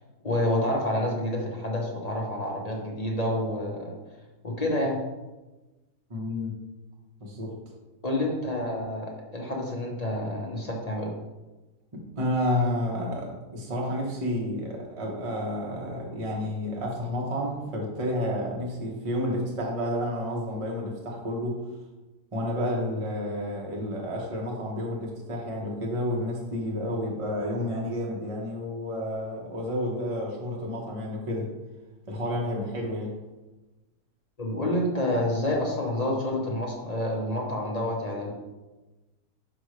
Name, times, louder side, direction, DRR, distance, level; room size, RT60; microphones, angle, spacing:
voice 1, 0.2-3.9 4.4-5.0 8.0-11.1 34.4-38.3, left 1 dB, 30° left, -1 dB, 0.8 m, -28 dB
voice 2, 6.1-6.5 7.2-7.5 11.9-21.6 22.3-31.5 32.1-33.1, left 1 dB, 25° right, -2 dB, 0.9 m, -30 dB
6.1 x 5.4 x 3.2 m, 1.1 s
omnidirectional pair, 1.8 m